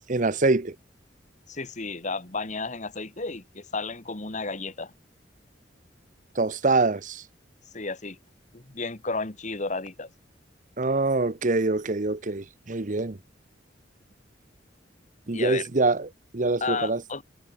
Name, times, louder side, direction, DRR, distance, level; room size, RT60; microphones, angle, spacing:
voice 1, 0.1-0.8 6.3-7.2 10.8-13.2 15.3-17.0, right 3 dB, 45° right, 0.9 m, -25 dB
voice 2, 1.5-4.9 7.7-8.2 8.5-10.1 15.3-15.6 16.6-17.2, left 3 dB, 40° left, 1.8 m, -32 dB
head